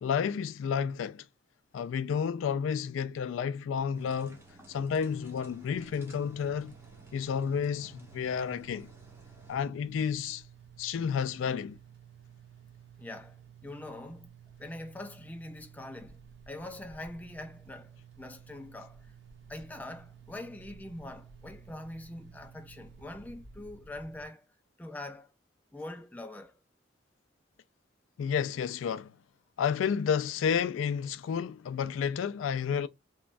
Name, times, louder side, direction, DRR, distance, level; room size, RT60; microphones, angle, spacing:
voice 1, 0.0-1.2 1.7-4.4 4.7-6.8 7.1-8.9 9.5-10.4 10.8-11.8 28.2-29.1 29.6-32.9, left 7 dB, 90° left, 0.3 m, -31 dB
sound 1, 3.9-9.7, right 2 dB, 15° right, 0.7 m, -55 dB
sound 2, 5.7-24.3, right 7 dB, 65° right, 0.6 m, -54 dB
voice 2, 13.0-13.4 13.6-14.3 14.6-16.2 16.5-17.9 18.2-19.1 19.5-24.4 24.8-25.3 25.7-26.5, left 1 dB, 10° left, 0.3 m, -43 dB
3.0 x 2.2 x 2.5 m
head